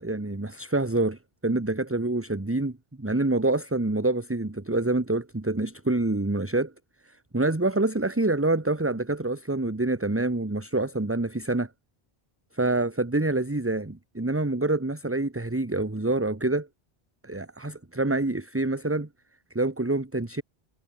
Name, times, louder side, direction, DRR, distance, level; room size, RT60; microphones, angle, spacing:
voice 1, 0.0-6.7 7.3-11.7 12.5-16.7 17.2-19.1 19.5-20.4, right 2 dB, 15° right, 1.1 m, -26 dB
omnidirectional pair, 1.0 m